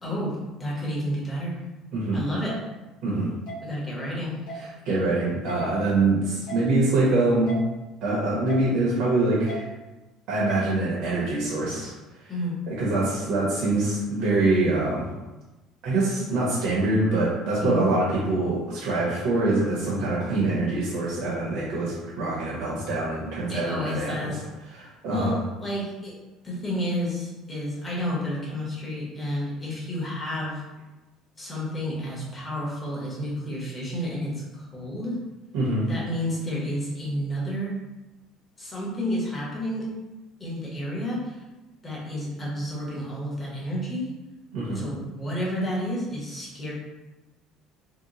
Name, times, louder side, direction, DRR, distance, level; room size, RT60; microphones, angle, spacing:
voice 1, 0.0-1.6 2.1-2.7 3.6-4.6 12.3-12.6 17.6-17.8 23.5-24.4 25.1-26.2 26.4-30.6 31.4-35.2 35.9-37.8 38.6-39.9 40.4-41.4 41.8-44.1 44.7-46.7, equal, 15° left, -5 dB, 1.0 m, -30 dB
sound 1, 2.5-2.6 3.5-3.6 4.5-4.6 5.5-5.6 6.5-6.6 7.5-7.6 8.5-8.6 9.5-9.6 10.5-10.6, right 1 dB, 75° left, 0.9 m, -36 dB
voice 2, 4.5-7.6 8.0-9.6 10.3-11.9 12.7-15.1 15.8-24.3 24.7-25.3 35.5-35.9 44.5-44.8, right 2 dB, 65° right, -6 dB, 0.9 m, -24 dB
2.8 x 2.2 x 3.9 m, 1.1 s
cardioid pair, 145°, 0 cm